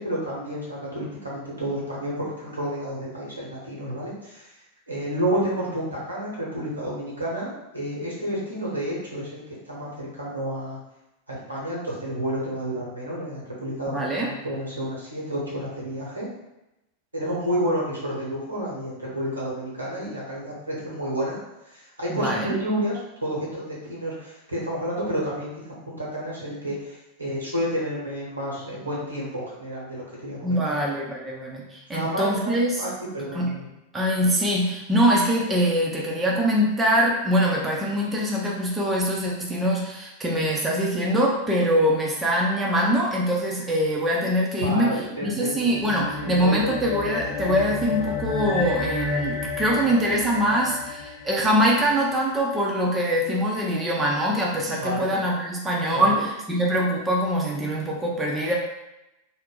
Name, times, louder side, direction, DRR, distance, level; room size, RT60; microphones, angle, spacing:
voice 1, 0.0-4.5 4.9-9.4 9.7-10.8 11.3-16.3 17.1-21.4 21.7-25.5 25.8-30.8 31.9-33.6 44.6-45.5 46.1-46.7 54.6-55.1 55.9-56.2, equal, 80° right, -5 dB, 1.1 m, -30 dB
voice 2, 13.9-14.3 22.1-22.6 30.4-32.8 33.3-33.5 33.9-44.9 45.2-58.5, equal, 15° right, -3 dB, 0.6 m, -23 dB
sound 1, 45.4-52.1, left 5 dB, 50° left, 0.6 m, -31 dB
2.6 x 2.1 x 3.8 m, 0.94 s
figure-of-eight pair, 90°, 0 cm